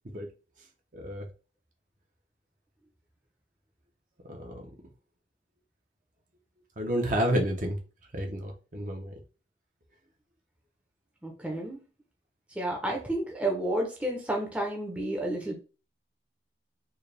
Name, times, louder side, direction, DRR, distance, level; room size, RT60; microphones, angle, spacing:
voice 1, 0.9-1.3 4.3-4.7 6.8-7.8 8.1-9.1, equal, 45° right, 0.8 m, -30 dB
voice 2, 11.2-11.8 12.6-15.5, right 1 dB, 5° right, 0.7 m, -31 dB
4.6 x 2.3 x 3.3 m
head